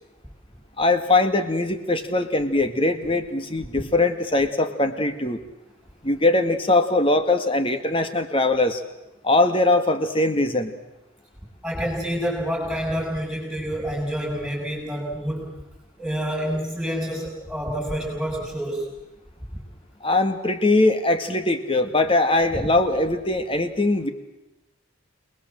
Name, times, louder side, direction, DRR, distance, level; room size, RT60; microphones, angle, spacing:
voice 1, 0.8-5.4 6.0-8.8 9.2-10.7 20.0-24.1, left 2 dB, 25° left, 8 dB, 1.9 m, -21 dB
voice 2, 11.6-15.5 16.0-18.9, equal, 5° right, -7 dB, 6.0 m, -28 dB
28.0 x 20.5 x 7.6 m, 0.98 s
head